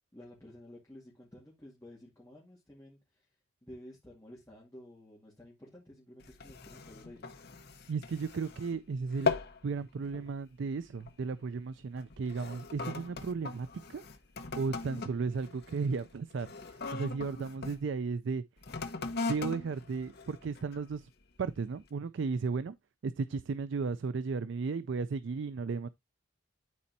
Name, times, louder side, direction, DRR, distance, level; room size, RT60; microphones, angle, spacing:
voice 1, 0.1-3.2 3.6-7.3, left 1 dB, 15° left, 2.1 m, -52 dB
sound 1, 6.2-8.8 9.1-9.6 10.0-10.3 11.0-11.2 12.0-17.8 18.6-20.9 21.5-21.6, left 4 dB, 50° left, 0.9 m, -39 dB
voice 2, 7.9-9.3 9.6-14.0 14.6-16.5 16.9-18.4 19.3-21.1 21.4-22.8 23.0-25.9, right 4 dB, 60° right, 0.4 m, -34 dB
13.0 x 4.3 x 2.7 m
head